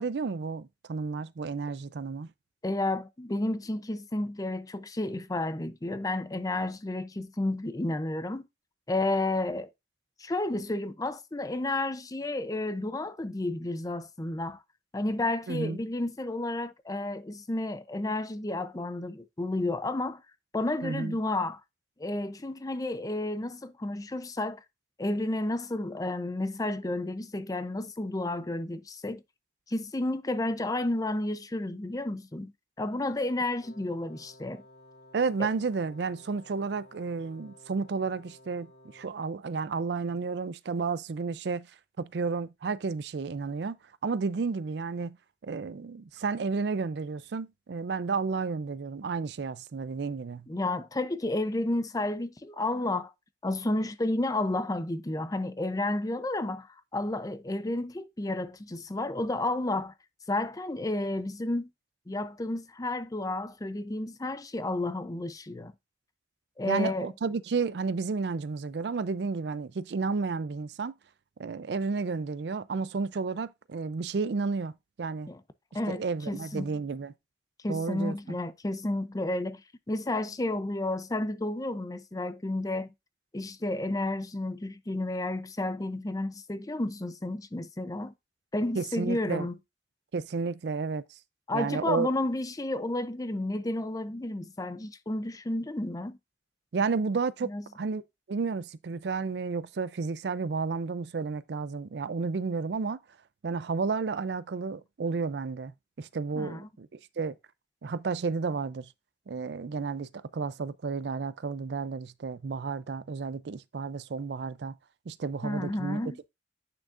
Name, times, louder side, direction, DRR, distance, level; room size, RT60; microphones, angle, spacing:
voice 1, 0.0-2.3 15.5-15.8 20.8-21.2 35.1-41.7 42.0-43.8 44.0-45.2 45.4-50.5 66.6-70.9 71.4-74.7 75.0-75.3 75.9-77.1 77.7-78.4 88.8-89.5 90.1-91.0 91.5-92.1 96.7-97.5 97.8-98.0 98.3-103.0 103.4-107.4 107.8-108.9 109.3-114.8 115.1-116.0, right 4 dB, 70° right, 0.4 m, -32 dB
voice 2, 2.6-8.5 8.9-9.7 10.2-14.6 14.9-20.2 20.5-21.6 22.0-24.6 25.0-29.2 29.7-32.5 32.8-34.6 35.4-35.5 50.5-53.1 53.4-59.9 60.3-61.7 62.1-65.7 66.6-67.1 75.3-75.4 75.7-76.7 77.6-79.6 79.9-82.9 83.3-88.1 88.5-89.5 91.5-96.2 97.4-97.6 106.4-106.7 115.4-116.2, left 2 dB, 20° left, 0.5 m, -31 dB
Wind instrument woodwind instrument, 33.6-39.3, left 1 dB, 60° left, 2.3 m, -55 dB
8.8 x 6.2 x 2.5 m
head